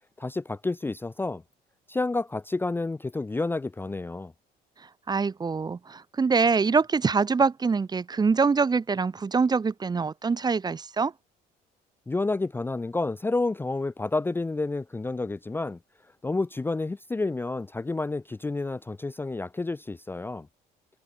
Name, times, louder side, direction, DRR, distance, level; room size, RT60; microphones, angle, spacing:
voice 1, 0.2-1.4 1.9-4.3 12.1-15.8 16.2-20.5, left 3 dB, 15° left, 0.6 m, -30 dB
voice 2, 5.1-11.1, right 5 dB, 25° right, 1.0 m, -24 dB
cardioid pair, 110°, 17 cm